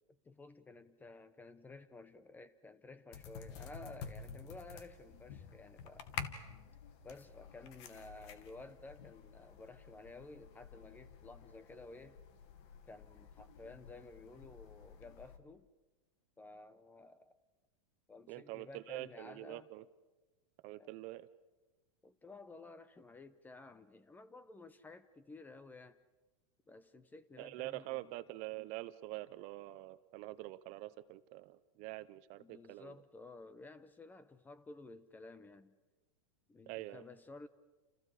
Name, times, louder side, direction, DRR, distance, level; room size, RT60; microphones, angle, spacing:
voice 1, 0.2-6.1 7.0-12.2 12.9-15.7 16.4-17.4 18.1-19.7 20.8-20.9 22.0-26.0 26.7-28.1 32.4-35.7 36.5-37.5, left 3 dB, 10° left, 0.9 m, -54 dB
sound 1, 3.1-15.4, left 7 dB, 55° left, 2.3 m, -50 dB
voice 2, 18.3-19.8 20.6-21.3 27.4-33.0 36.7-37.1, right 18 dB, 45° right, 0.9 m, -45 dB
29.0 x 29.0 x 5.0 m
supercardioid pair, 140°, 17 cm